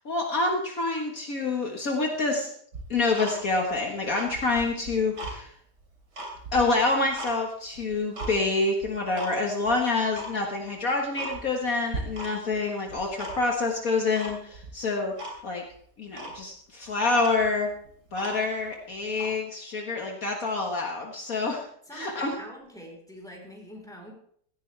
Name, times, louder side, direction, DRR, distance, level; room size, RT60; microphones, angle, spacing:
voice 1, 0.1-2.5 2.9-5.5 6.5-15.1 15.4-15.6 16.0-17.7 18.1-21.7 21.9-22.4, left 3 dB, 55° left, 1 dB, 2.0 m, -27 dB
Tick-tock, 2.7-3.7 4.1-5.4 5.8-7.4 7.7-8.3 8.8-9.3 9.6-9.7 10.1-10.3 10.7-10.8 11.1-11.7 11.9-12.6 12.8-13.6 14.2-14.7 15.2-15.4 15.7-15.8 16.1-16.4 16.9-17.0 17.1-18.6 19.1-19.4, right 1 dB, 80° right, 3.7 m, -38 dB
voice 2, 21.9-24.1, equal, ahead, -1 dB, 4.2 m, -44 dB
17.0 x 14.5 x 3.4 m, 0.63 s
omnidirectional pair, 1.8 m